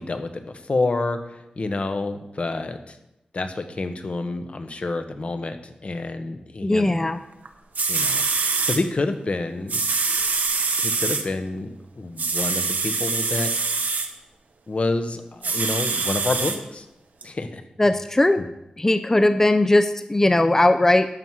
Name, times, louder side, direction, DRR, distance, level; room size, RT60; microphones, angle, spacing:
voice 1, 0.0-3.0 3.3-6.9 7.9-9.8 10.8-13.5 14.7-16.9 17.2-17.6 18.4-18.5, left 2 dB, 50° left, 8 dB, 1.0 m, -28 dB
voice 2, 6.6-7.2 17.8-18.4 18.8-21.1, left 1 dB, 15° left, 10 dB, 0.5 m, -18 dB
sound 1, 7.4-7.5 7.7-8.8 9.7-11.2 12.2-14.1 15.4-16.6 17.2-17.3, right 4 dB, 85° right, 1.1 m, -24 dB
11.5 x 7.5 x 4.8 m, 0.89 s
wide cardioid pair, 95°, 3 cm